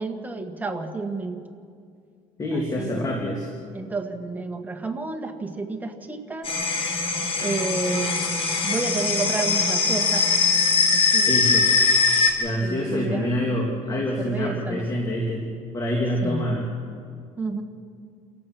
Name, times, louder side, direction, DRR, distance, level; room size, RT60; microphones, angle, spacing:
voice 1, 0.0-1.4 2.5-3.1 3.7-6.5 7.4-8.3 8.6-10.3 10.9-11.3 12.6-13.3 13.8-15.0 16.2-16.5 17.4-17.6, right 3 dB, 10° right, 4 dB, 1.7 m, -30 dB
voice 2, 2.4-3.5 11.3-11.7 12.4-15.4 15.7-16.7, left 1 dB, 25° left, -1 dB, 2.6 m, -26 dB
sound 1, 6.4-12.3, left 4 dB, 40° left, 3.8 m, -21 dB
28.5 x 15.5 x 6.1 m, 2.3 s
cardioid pair, 130°, 15 cm